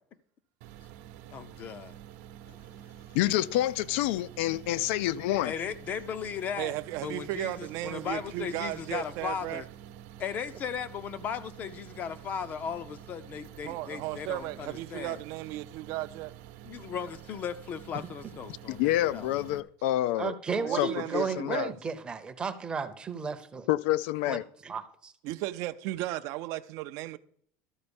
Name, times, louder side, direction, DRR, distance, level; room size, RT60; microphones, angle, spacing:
sound 1, 0.6-19.6, right 11 dB, 70° right, 0.9 m, -48 dB
voice 1, 1.3-1.9 5.4-6.8 7.0-9.7 10.2-15.2 16.6-19.6, left 7 dB, 30° left, 0.5 m, -37 dB
voice 2, 3.1-5.5 18.7-20.4 20.7-21.7 23.7-24.4, left 14 dB, 80° left, 0.4 m, -28 dB
voice 3, 6.6-9.6 13.6-16.3 20.6-21.7 25.2-27.2, right 16 dB, 50° right, 0.4 m, -35 dB
voice 4, 20.2-23.7 24.3-25.1, right 5 dB, 15° right, 0.6 m, -34 dB
13.0 x 4.3 x 7.0 m
cardioid pair, 180°, 6 cm